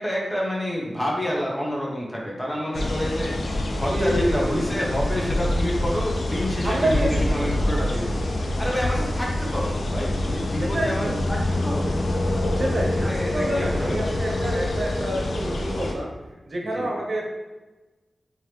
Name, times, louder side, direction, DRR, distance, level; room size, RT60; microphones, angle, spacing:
voice 1, 0.0-8.3 8.6-12.0 12.9-14.2 16.6-16.9, equal, 15° left, -3 dB, 0.9 m, -28 dB
sound 1, 2.7-15.9, left 1 dB, 80° left, 0.6 m, -26 dB
voice 2, 3.9-4.8 6.6-7.5 10.6-11.2 12.6-16.1 16.5-17.3, right 1 dB, 50° right, -1 dB, 0.9 m, -28 dB
3.7 x 2.9 x 3.2 m, 1.2 s
wide cardioid pair, 85°, 0 cm